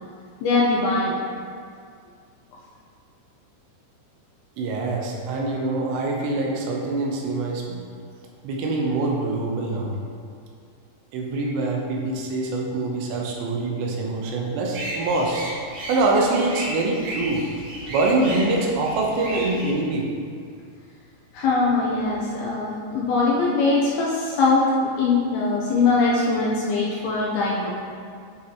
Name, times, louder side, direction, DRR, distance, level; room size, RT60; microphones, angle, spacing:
voice 1, 0.4-1.2 21.3-27.7, left 3 dB, 80° left, -5 dB, 2.3 m, -22 dB
voice 2, 4.6-7.8 8.4-9.9 11.1-15.4 15.9-17.5 17.9-20.1, right 2 dB, 90° right, -1 dB, 3.0 m, -24 dB
sound 1, 14.7-19.7, right 1 dB, 75° right, 1.9 m, -34 dB
9.2 x 4.1 x 2.8 m, 2.2 s
omnidirectional pair, 5.0 m